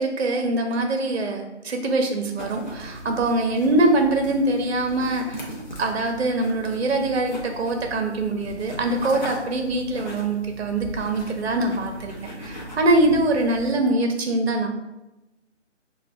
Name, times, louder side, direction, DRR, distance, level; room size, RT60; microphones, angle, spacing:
voice 1, 0.0-5.5 5.8-12.1 12.4-14.7, right 2 dB, 60° right, 4 dB, 0.6 m, -23 dB
sound 1, 2.4-13.7, equal, 40° left, 0.6 m, -38 dB
4.6 x 2.2 x 2.3 m, 0.99 s
figure-of-eight pair, 165°, 36 cm